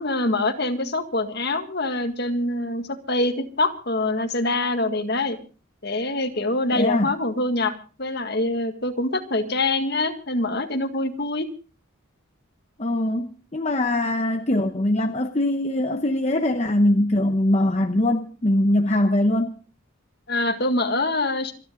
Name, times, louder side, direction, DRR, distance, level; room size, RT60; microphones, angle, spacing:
voice 1, 0.0-5.4 5.8-11.5 20.3-21.5, left 2 dB, 50° left, 1.9 m, -25 dB
voice 2, 6.7-7.1 12.8-19.5, left 1 dB, 30° left, 0.9 m, -22 dB
27.0 x 10.5 x 3.8 m
head